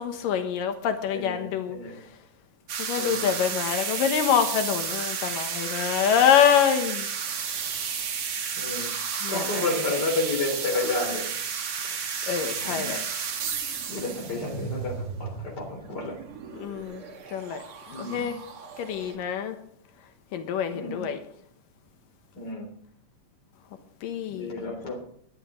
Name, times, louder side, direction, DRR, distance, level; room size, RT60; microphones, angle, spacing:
voice 1, 0.0-2.1 2.8-7.1 9.2-10.0 11.8-13.0 16.5-17.0 17.3-17.6 18.0-18.4 18.8-19.6 20.3-21.2 24.0-24.5, left 8 dB, 85° left, 2.9 m, -26 dB
voice 2, 1.1-2.0 3.0-3.4 8.6-9.0 9.3-11.3 12.6-13.0 13.9-16.2 17.9-18.3 20.7-21.1 22.4-22.7 24.3-25.0, left 2 dB, 30° left, 3.8 m, -31 dB
sound 1, 2.7-19.2, right 6 dB, 50° right, 2.1 m, -32 dB
20.5 x 10.5 x 3.8 m
omnidirectional pair, 3.8 m